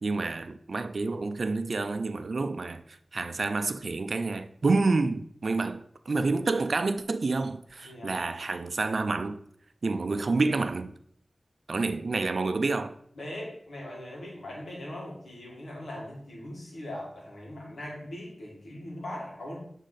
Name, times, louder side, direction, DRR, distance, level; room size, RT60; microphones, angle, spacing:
voice 1, 0.0-2.8 3.1-9.4 9.8-10.9 11.7-12.9, right 3 dB, 70° right, 0.4 m, -28 dB
voice 2, 7.8-8.2 13.2-19.6, left 1 dB, 90° left, 2.1 m, -40 dB
8.1 x 3.7 x 4.0 m
wide cardioid pair, 55°, 0 cm